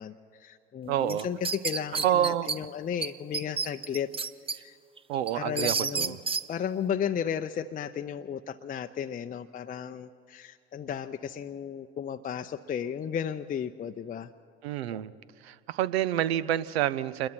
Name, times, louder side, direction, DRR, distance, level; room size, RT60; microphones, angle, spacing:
voice 1, 0.0-4.1 4.5-4.8 5.3-6.2 6.5-14.3, left 8 dB, 25° left, 6 dB, 0.6 m, -34 dB
voice 2, 0.9-1.3 2.0-2.5 5.1-6.2 14.6-15.1 15.4-17.3, right 11 dB, 75° right, 17 dB, 0.7 m, -28 dB
sound 1, 1.1-2.6 3.0-3.1 3.3-4.6 5.0-6.4, right 5 dB, 15° right, 0.6 m, -30 dB
27.0 x 21.5 x 4.4 m, 2.3 s
figure-of-eight pair, 65°, 32 cm